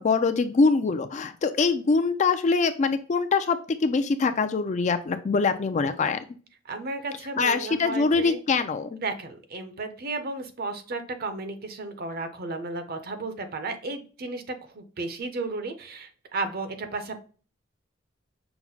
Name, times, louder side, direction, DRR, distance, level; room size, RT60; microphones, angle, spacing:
voice 1, 0.0-6.2 7.4-9.0, left 4 dB, 40° left, 9 dB, 0.4 m, -24 dB
voice 2, 6.7-8.4 9.0-17.2, right 3 dB, 55° right, 8 dB, 0.7 m, -34 dB
5.8 x 2.1 x 3.9 m, 0.38 s
head